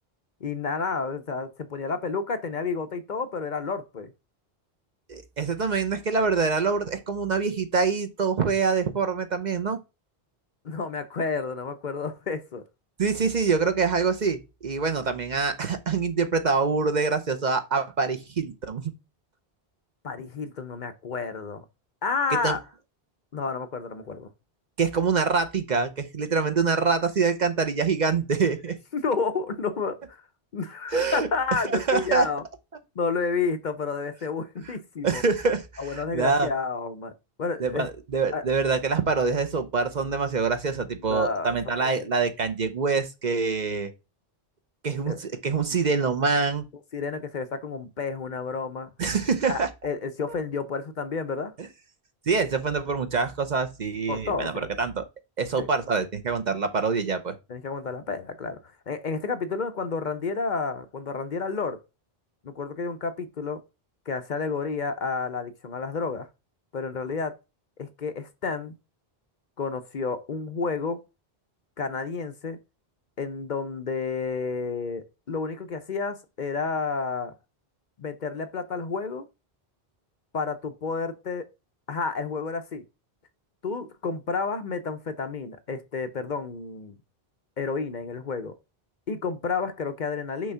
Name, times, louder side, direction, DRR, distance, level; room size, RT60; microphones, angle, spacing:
voice 1, 0.4-4.1 10.6-12.6 20.0-21.6 22.0-22.6 23.3-24.3 28.9-30.2 30.5-32.4 33.0-35.2 35.8-37.1 37.4-37.9 38.3-38.4 41.1-41.6 41.9-42.1 45.1-45.2 46.9-48.9 49.5-51.5 54.1-54.6 55.6-55.7 57.5-61.8 62.4-63.6 64.1-66.3 66.7-67.4 67.8-68.7 69.6-71.0 71.8-72.6 73.2-77.3 78.0-79.3 80.3-81.5 81.9-82.8 83.6-87.0 87.6-88.6 89.1-90.5, left 4 dB, 50° left, 0.8 m, -30 dB
voice 2, 5.1-9.8 13.0-18.9 22.4-22.6 24.8-28.8 30.9-31.3 31.6-32.3 35.0-36.5 37.6-43.9 44.8-46.6 49.0-49.7 51.6-51.7 52.3-54.5 54.8-55.0 55.4-57.4, right 4 dB, 50° right, 0.8 m, -25 dB
6.2 x 3.5 x 5.5 m
omnidirectional pair, 1.0 m